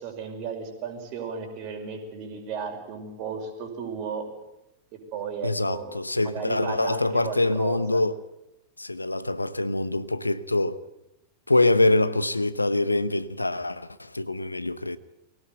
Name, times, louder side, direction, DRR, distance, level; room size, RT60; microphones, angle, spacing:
voice 1, 0.0-4.2 5.1-5.9 6.2-8.0, right 6 dB, 40° right, 5.3 m, -34 dB
voice 2, 5.4-8.2 8.8-10.8 11.5-15.0, left 2 dB, 85° left, 0.9 m, -24 dB
22.5 x 17.5 x 9.1 m
figure-of-eight pair, 90°, 0 cm